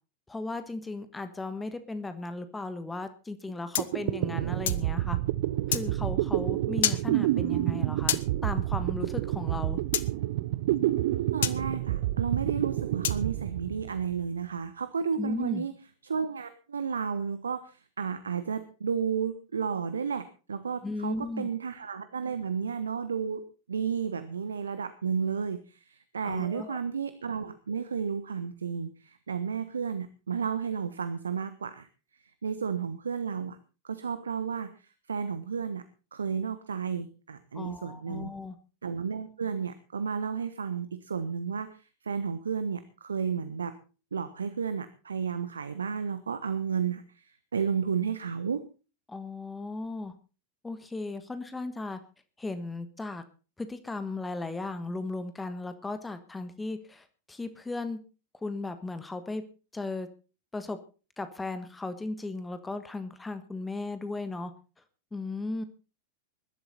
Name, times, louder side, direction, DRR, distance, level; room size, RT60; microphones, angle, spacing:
voice 1, 0.3-5.2 5.7-9.8 15.2-15.6 20.8-21.5 26.2-26.8 37.5-38.5 49.1-50.1 50.6-52.0 52.4-53.2 53.6-58.0 58.4-59.4 59.7-60.1 60.5-60.8 61.2-64.5 65.1-65.6, left 3 dB, 10° left, 10 dB, 1.5 m, -36 dB
sound 1, 3.5-3.6 3.8-14.2, right 15 dB, 55° right, 0.7 m, -29 dB
sound 2, 3.7-4.9 5.7-5.9 6.8-7.0 8.1-8.3 9.9-10.1 11.4-11.6 13.0-13.2, left 11 dB, 60° left, 1.1 m, -28 dB
voice 2, 11.3-15.7 16.0-23.4 23.7-31.9 32.1-33.6 33.8-35.8 36.1-38.3 38.8-43.8 44.1-48.6, right 6 dB, 70° right, 12 dB, 1.2 m, -32 dB
21.0 x 12.0 x 4.2 m, 0.35 s
figure-of-eight pair, 90°, 0 cm